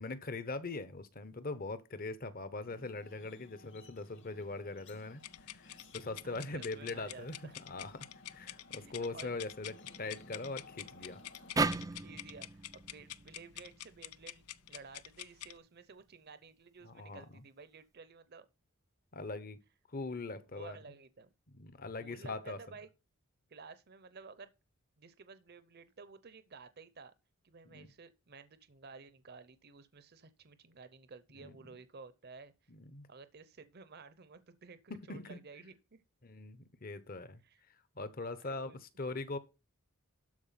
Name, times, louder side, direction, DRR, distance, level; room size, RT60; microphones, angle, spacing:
voice 1, 0.0-7.4 7.6-9.7 10.0-11.2 16.8-17.2 19.1-19.6 19.9-20.8 21.5-22.6 27.6-27.9 31.4-31.6 32.7-33.1 34.9-35.4 36.2-37.4 38.0-39.4, left 3 dB, 40° left, 1.0 m, -41 dB
sound 1, 2.7-11.7, left 2 dB, 55° left, 1.8 m, -58 dB
sound 2, 5.2-15.6, left 13 dB, 90° left, 0.5 m, -48 dB
voice 2, 6.2-7.6 8.7-9.3 12.0-14.4 14.7-18.5 20.5-21.3 22.0-22.9 23.5-24.5 25.0-27.1 27.4-32.5 33.1-36.0 37.4-37.6 38.4-38.8, right 4 dB, 45° right, 0.7 m, -53 dB
sound 3, 11.6-14.8, right 3 dB, 15° right, 0.4 m, -37 dB
12.5 x 4.6 x 5.7 m
head